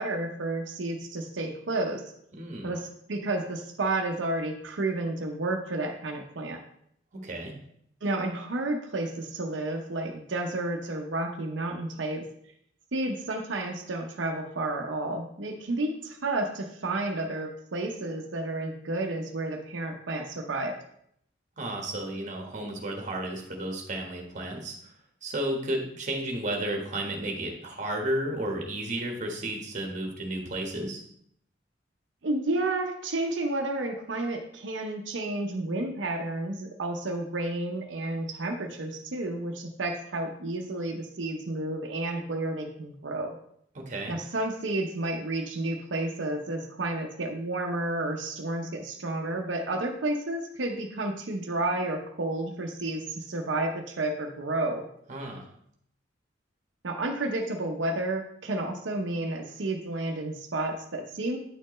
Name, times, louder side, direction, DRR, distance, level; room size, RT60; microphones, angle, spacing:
voice 1, 0.0-2.0 2.6-6.6 8.0-12.3 12.9-20.7 32.2-43.4 44.1-54.8 56.8-61.4, right 2 dB, 85° right, 2 dB, 0.7 m, -31 dB
voice 2, 2.3-2.7 7.1-7.5 21.6-24.8 25.2-31.0 43.7-44.2 55.1-55.5, right 1 dB, 40° right, 2 dB, 1.2 m, -33 dB
8.9 x 4.4 x 3.1 m, 0.69 s
head